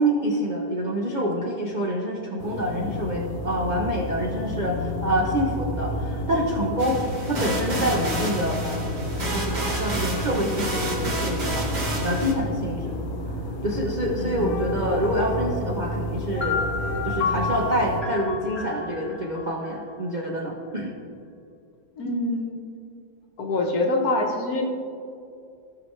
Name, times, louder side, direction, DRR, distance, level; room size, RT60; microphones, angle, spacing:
voice 1, 0.0-7.0 7.2-8.8 9.3-11.7 12.0-12.9 13.6-16.6 17.0-20.9, equal, 85° right, -2 dB, 0.4 m, -26 dB
sound 1, 2.4-18.0, left 1 dB, 85° left, 1.9 m, -30 dB
sound 2, 6.8-12.3, right 1 dB, 55° right, 2.6 m, -30 dB
voice 2, 14.2-14.8 22.0-22.6 23.4-24.6, left 2 dB, 55° left, 2 dB, 1.2 m, -26 dB
sound 3, 16.4-20.2, left 5 dB, 15° left, 1.3 m, -31 dB
15.5 x 5.9 x 3.2 m, 2.5 s
omnidirectional pair, 2.2 m